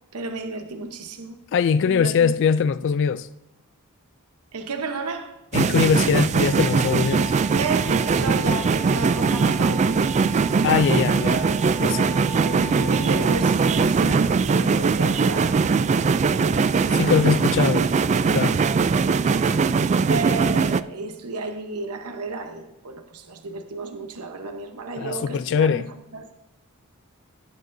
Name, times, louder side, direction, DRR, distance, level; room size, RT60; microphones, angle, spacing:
voice 1, 0.1-1.4 1.9-2.3 4.5-5.4 7.5-9.9 12.0-15.6 16.2-17.4 19.3-19.7 20.1-25.8 26.1-26.3, right 3 dB, 80° right, 1.0 m, -32 dB
voice 2, 1.5-3.3 5.5-7.3 10.6-11.5 11.8-12.1 16.9-17.9 18.3-18.6 25.0-25.9, left 6 dB, 55° left, 0.3 m, -22 dB
sound 1, 5.5-20.8, right 5 dB, 30° right, 0.3 m, -21 dB
sound 2, 6.4-14.0, right 1 dB, 50° right, 1.5 m, -39 dB
17.5 x 9.2 x 2.7 m
head